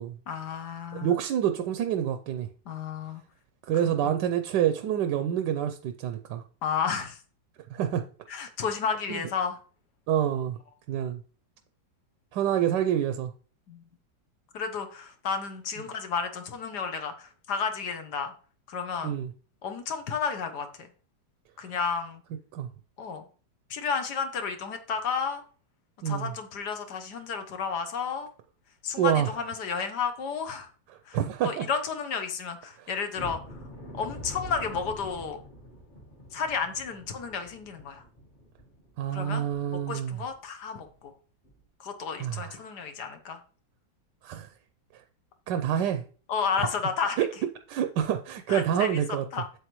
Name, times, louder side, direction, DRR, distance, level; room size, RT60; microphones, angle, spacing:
voice 1, 0.3-1.2 2.7-3.2 6.6-7.2 8.3-9.6 13.7-13.8 14.5-18.3 18.7-19.2 19.6-20.9 21.6-22.2 23.0-23.2 23.7-25.4 26.0-28.3 28.8-30.7 31.1-33.6 33.9-35.4 36.3-38.0 39.1-39.4 39.9-41.1 41.8-43.4 46.3-47.3 48.5-49.0 49.3-49.4, left 6 dB, 65° left, 7 dB, 1.5 m, -32 dB
voice 2, 0.9-2.5 3.7-6.4 7.7-8.0 9.1-9.2 10.1-10.6 10.9-11.2 12.3-13.3 19.0-19.3 22.5-22.7 26.0-26.3 29.0-29.3 31.1-31.7 32.8-32.9 39.0-40.2 42.2-42.5 44.2-44.5 45.5-46.0 47.7-49.2, right 10 dB, 70° right, 8 dB, 1.2 m, -27 dB
sound 1, 33.1-39.9 40.2-40.4 40.8-41.0 41.4-41.6, equal, 25° left, 1.5 m, -45 dB
8.0 x 7.7 x 3.0 m, 0.40 s
omnidirectional pair, 2.1 m